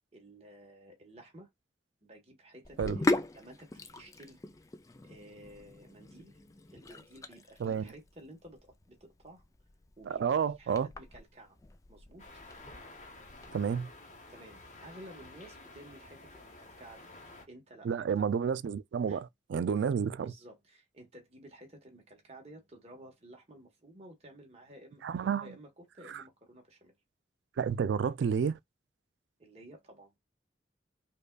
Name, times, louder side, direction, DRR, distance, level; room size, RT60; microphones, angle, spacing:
voice 1, 0.1-1.5 2.0-3.1 3.3-4.4 5.0-6.4 6.7-9.5 10.0-11.6 11.9-12.3 14.3-18.3 19.1-19.2 20.2-26.9 29.4-30.1, right 1 dB, 35° right, 1.2 m, -53 dB
Sink (filling or washing), 2.6-13.5, left 2 dB, 20° left, 0.3 m, -39 dB
voice 2, 7.6-7.9 10.1-10.9 13.5-13.9 17.8-20.3 25.0-25.5 26.1-26.2 27.6-28.6, right 7 dB, 80° right, 0.3 m, -30 dB
sound 1, 12.2-17.4, left 2 dB, 40° left, 0.9 m, -51 dB
5.1 x 2.4 x 2.3 m
head